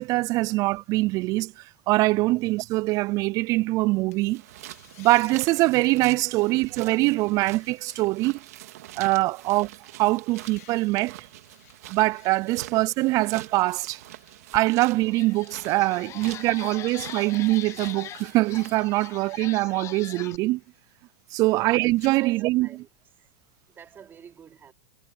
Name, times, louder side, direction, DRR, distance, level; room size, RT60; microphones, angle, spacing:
voice 1, 0.0-4.4 5.0-8.4 9.0-9.7 10.0-11.3 11.9-14.0 14.5-20.6 21.3-22.7, right 20 dB, 45° right, 0.3 m, -23 dB
sound 1, 4.1-18.3 18.7-22.1, left 17 dB, 70° left, 2.4 m, -58 dB
sound 2, 4.3-19.2, right 15 dB, 70° right, 2.3 m, -45 dB
sound 3, 14.5-14.6 15.0-20.4, left 12 dB, 35° left, 0.8 m, -41 dB
voice 2, 22.2-22.9 23.7-24.7, right 7 dB, 25° right, 3.4 m, -49 dB
hypercardioid pair, 110°, 9 cm